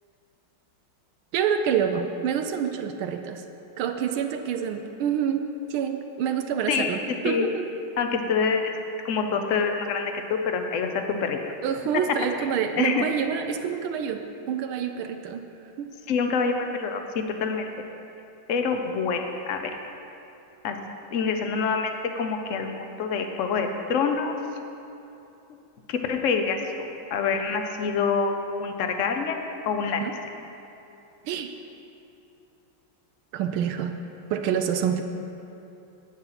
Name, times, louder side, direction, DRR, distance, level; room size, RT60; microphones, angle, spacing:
voice 1, 1.3-3.4 3.8-7.7 11.6-15.5 15.8-15.9 30.0-30.2 31.2-31.5 33.3-33.9 34.3-35.0, right 8 dB, 85° right, 6 dB, 1.5 m, -27 dB
voice 2, 8.0-8.7 9.0-11.4 12.8-13.1 16.1-17.6 18.5-19.7 20.6-20.8 21.1-24.3 25.9-29.4 29.7-30.0, left 5 dB, 60° left, 5 dB, 0.8 m, -26 dB
9.7 x 9.2 x 5.7 m, 2.8 s
omnidirectional pair, 2.3 m